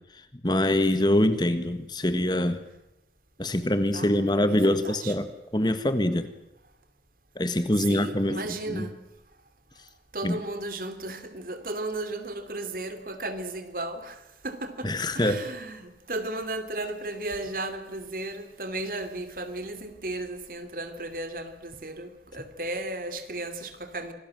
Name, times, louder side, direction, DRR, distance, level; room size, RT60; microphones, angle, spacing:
voice 1, 0.1-2.6 3.4-5.3 5.5-6.3 7.3-8.4 8.7-8.9 10.2-10.4 14.8-15.4, left 1 dB, 25° left, 1.6 m, -24 dB
voice 2, 3.9-5.1 7.8-8.9 10.1-24.1, right 2 dB, 50° right, 2.9 m, -35 dB
27.0 x 20.0 x 7.7 m
head